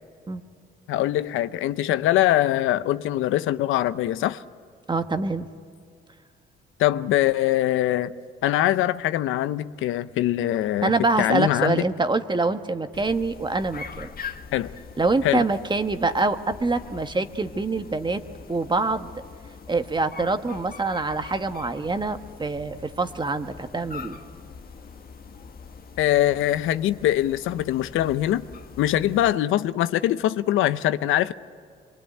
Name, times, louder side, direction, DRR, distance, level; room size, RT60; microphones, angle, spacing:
voice 1, 0.9-4.4 6.8-8.1 8.4-10.9 11.2-11.9 14.5-14.7 15.2-15.5 26.0-28.5 28.8-31.3, left 13 dB, 85° left, 0.7 m, -23 dB
voice 2, 4.9-5.5 10.8-14.1 15.0-18.2 18.5-19.1 19.7-24.2, right 3 dB, 25° right, 1.4 m, -25 dB
sound 1, 12.9-29.3, left 5 dB, 50° left, 1.5 m, -43 dB
24.5 x 23.5 x 9.2 m
cardioid pair, 90°, 20 cm